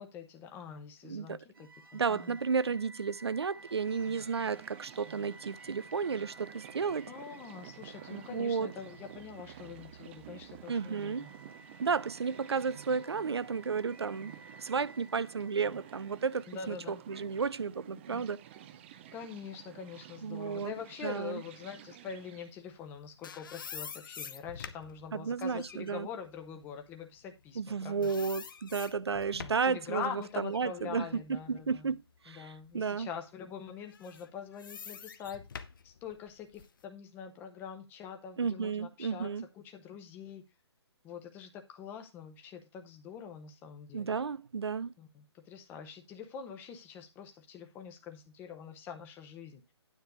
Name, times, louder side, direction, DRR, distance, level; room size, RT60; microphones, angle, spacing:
voice 1, 0.0-2.4 7.1-11.3 16.5-17.0 18.1-18.3 19.1-28.2 29.4-31.9 32.3-35.4 35.8-40.4 41.0-44.2 45.0-49.6, left 7 dB, 15° left, 1.0 m, -44 dB
voice 2, 1.0-1.4 1.9-7.1 8.1-8.7 10.7-11.3 11.8-14.3 14.6-18.4 20.2-20.7 21.0-21.4 25.1-26.1 27.6-31.0 31.3-33.1 38.4-39.4 43.9-44.9, right 5 dB, 70° right, 0.5 m, -33 dB
sound 1, 1.5-16.7, right 2 dB, 55° right, 1.0 m, -54 dB
sound 2, 3.6-22.5, right 11 dB, 25° right, 0.6 m, -52 dB
sound 3, 22.8-27.7 28.0-29.8 30.2-32.2 32.7-32.8 33.8-36.8, left 7 dB, 50° left, 0.8 m, -47 dB
9.6 x 3.4 x 6.7 m
figure-of-eight pair, 140°, 14 cm